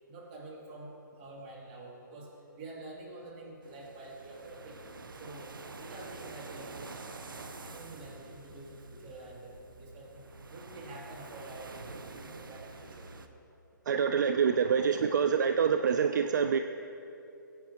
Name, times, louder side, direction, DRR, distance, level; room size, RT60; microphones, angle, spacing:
voice 1, 0.1-4.8 5.1-7.0 7.6-13.1, right 2 dB, 30° right, -4 dB, 2.8 m, -47 dB
sound 1, 3.6-13.3, right 3 dB, 85° right, 0.9 m, -47 dB
voice 2, 13.9-16.6, right 7 dB, 60° right, 8 dB, 0.5 m, -26 dB
20.0 x 8.9 x 3.0 m, 2.8 s
hypercardioid pair, 145°, 11 cm